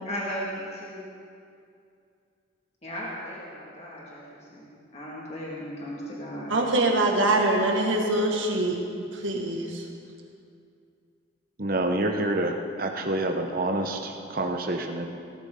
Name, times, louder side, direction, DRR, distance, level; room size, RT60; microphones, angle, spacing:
voice 1, 0.0-1.1 2.8-6.5, equal, 35° left, -5 dB, 2.1 m, -36 dB
voice 2, 6.5-8.8 9.1-9.9, right 2 dB, 75° right, 0 dB, 1.9 m, -24 dB
voice 3, 11.6-15.1, right 1 dB, 45° right, 3 dB, 1.1 m, -27 dB
17.5 x 13.5 x 3.9 m, 2.4 s
head